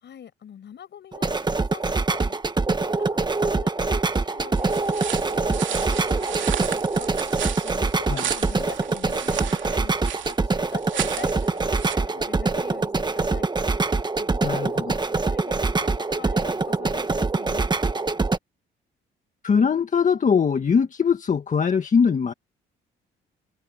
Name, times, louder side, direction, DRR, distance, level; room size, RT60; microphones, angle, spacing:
voice 1, 0.0-2.4 2.7-7.1 7.6-10.0 10.3-13.5 14.2-17.7, left 9 dB, 60° left, 7.1 m, -44 dB
sound 1, 1.1-18.4, right 3 dB, 20° right, 1.3 m, -24 dB
sound 2, 4.6-11.9, right 10 dB, 70° right, 2.7 m, -34 dB
voice 2, 14.4-14.9 19.4-22.3, left 6 dB, 40° left, 1.6 m, -21 dB
cardioid pair, 90°, 20 cm